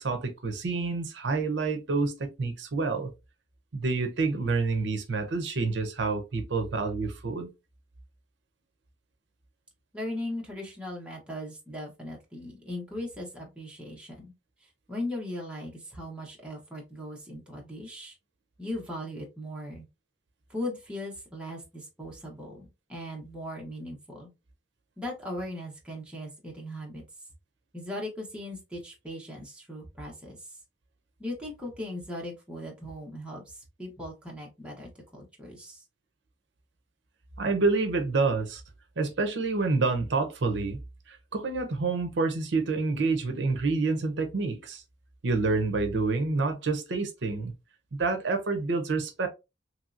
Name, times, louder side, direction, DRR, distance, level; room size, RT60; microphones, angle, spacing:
voice 1, 0.0-3.1 3.7-7.5 37.4-38.6 39.0-40.8 41.1-44.8 45.2-47.5 48.0-49.3, right 3 dB, 65° right, 0.6 m, -28 dB
voice 2, 9.9-14.3 14.6-18.1 18.6-19.9 20.5-24.3 25.0-27.0 27.7-30.5 31.2-35.8, left 1 dB, 5° right, 0.9 m, -38 dB
3.0 x 2.7 x 2.4 m
head